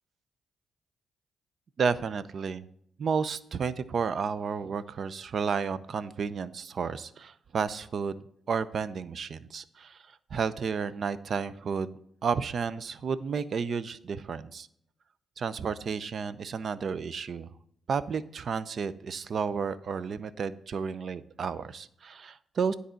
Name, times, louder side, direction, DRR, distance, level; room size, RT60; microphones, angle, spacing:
voice 1, 1.8-2.6 3.0-8.2 8.5-10.0 10.3-14.7 15.4-17.5 17.9-22.7, right 5 dB, 60° right, 15 dB, 0.6 m, -32 dB
10.0 x 4.1 x 7.6 m, 0.68 s
supercardioid pair, 50°, 0 cm